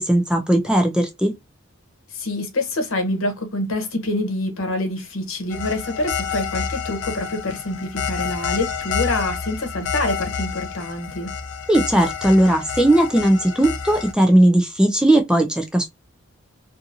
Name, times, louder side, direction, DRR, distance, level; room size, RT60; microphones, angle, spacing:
voice 1, 0.0-1.3 11.7-15.9, right 1 dB, 5° right, 0.3 m, -17 dB
voice 2, 2.1-11.3, left 2 dB, 80° left, 0.9 m, -26 dB
sound 1, 5.5-14.1, left 6 dB, 65° left, 0.5 m, -29 dB
2.6 x 2.5 x 2.7 m
head